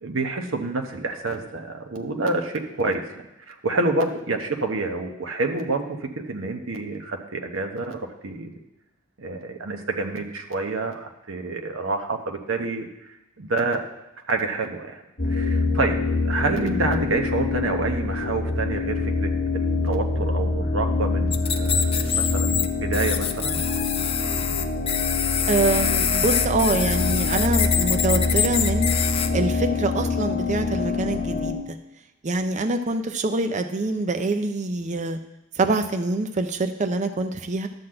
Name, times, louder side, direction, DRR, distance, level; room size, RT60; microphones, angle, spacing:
voice 1, 0.0-3.0 3.5-8.5 9.2-12.9 13.4-13.8 14.3-15.0 15.3-16.0 16.2-23.6, right 3 dB, 85° right, 4 dB, 1.0 m, -28 dB
sound 1, 15.2-31.5, left 3 dB, 55° left, 1.7 m, -25 dB
sound 2, 21.3-22.7 22.9-29.3, left 8 dB, 30° left, 0.5 m, -25 dB
voice 2, 25.5-28.9 29.3-31.8 32.2-35.2 35.6-37.7, right 2 dB, 35° right, 7 dB, 0.5 m, -25 dB
11.5 x 4.0 x 7.6 m, 0.95 s
head